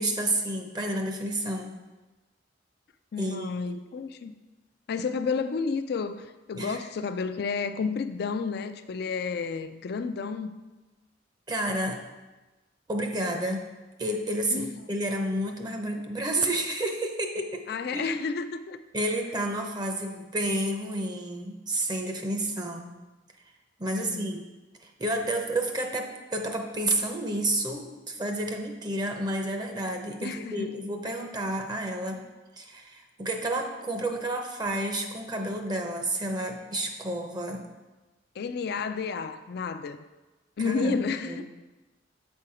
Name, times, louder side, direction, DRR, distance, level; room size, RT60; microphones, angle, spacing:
voice 1, 0.0-1.8 3.2-3.8 6.5-6.9 11.5-12.0 12.9-13.7 14.0-17.6 17.9-18.1 18.9-23.0 23.8-24.4 24.8-32.2 32.6-37.7 40.6-41.4, right 1 dB, 25° right, 4 dB, 0.6 m, -30 dB
voice 2, 3.1-4.4 4.9-10.6 14.5-14.7 17.7-18.8 23.9-24.3 30.2-30.8 38.4-40.0 40.6-41.4, left 5 dB, 60° left, 10 dB, 0.4 m, -31 dB
7.6 x 4.4 x 4.9 m, 1.2 s
head